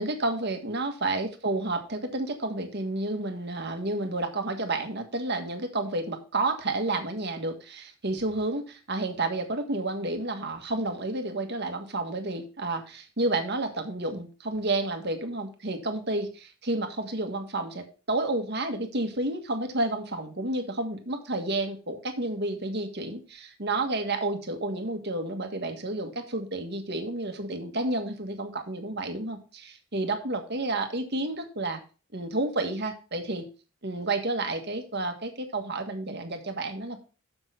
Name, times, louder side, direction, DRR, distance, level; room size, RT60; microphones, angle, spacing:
voice 1, 0.0-31.8 32.1-33.4 33.8-37.0, right 2 dB, 50° right, 5 dB, 1.6 m, -30 dB
7.0 x 6.3 x 5.6 m, 0.34 s
head